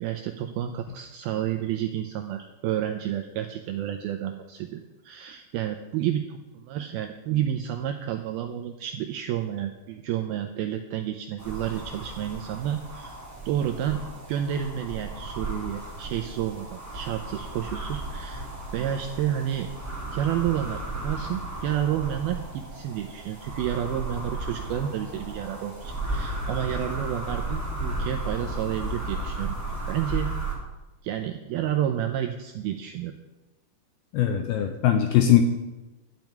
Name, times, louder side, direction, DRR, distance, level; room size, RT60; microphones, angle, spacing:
voice 1, 0.0-13.2 13.5-14.0 14.3-19.7 20.1-29.6 29.9-30.3 31.0-33.1, right 10 dB, 85° right, 5 dB, 2.2 m, -30 dB
sound 1, 11.4-30.5, right 2 dB, 5° right, 1.2 m, -34 dB
voice 2, 34.1-35.4, left 11 dB, 80° left, 6 dB, 2.2 m, -20 dB
12.5 x 5.9 x 9.3 m, 1.1 s
omnidirectional pair, 5.1 m